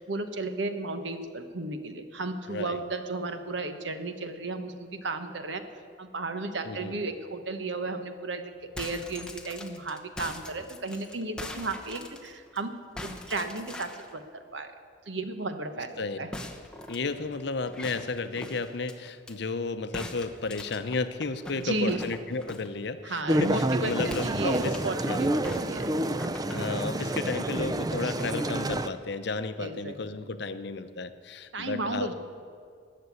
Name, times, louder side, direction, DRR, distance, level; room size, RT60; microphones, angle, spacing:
voice 1, 0.0-5.6 6.0-12.7 13.0-14.7 15.1-16.3 21.5-22.1 23.0-25.9 29.6-30.0 31.5-32.1, right 2 dB, 75° right, 8 dB, 1.2 m, -34 dB
voice 2, 2.5-2.8 6.6-7.0 16.0-16.2 16.9-24.8 25.1-25.4 26.5-32.1, left 3 dB, 60° left, 11 dB, 0.7 m, -33 dB
sound 1, 8.6-12.6 13.0-14.1 16.3-19.3 19.9-22.8 24.0-25.0 25.4-27.2, left 1 dB, 5° left, 1.0 m, -42 dB
sound 2, 23.3-28.9, right 1 dB, 20° right, 0.5 m, -28 dB
20.0 x 6.8 x 8.3 m, 2.2 s
head